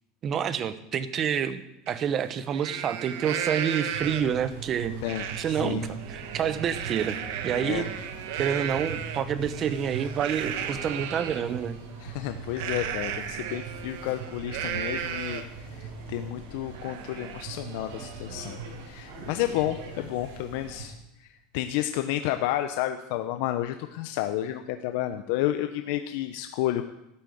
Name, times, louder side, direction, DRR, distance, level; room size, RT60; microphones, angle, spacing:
voice 1, 0.2-1.6 1.9-5.0 5.4-7.9 8.4-11.8, right 8 dB, 30° right, 13 dB, 0.9 m, -28 dB
Livestock farm animals working animals, 1.9-2.0 2.4-4.5 5.0-5.5 5.9-11.4 12.5-15.6 16.0-16.1 16.5-18.9, right 9 dB, 70° right, 1.4 m, -35 dB
sound 1, 3.9-20.9, right 4 dB, 90° right, 6.8 m, -41 dB
voice 2, 5.0-5.9 7.6-7.9 12.0-15.4 15.8-18.6 18.9-20.9 21.5-26.9, left 13 dB, 65° left, 8 dB, 0.8 m, -31 dB
13.0 x 9.0 x 7.9 m, 0.85 s
supercardioid pair, 160°, 0 cm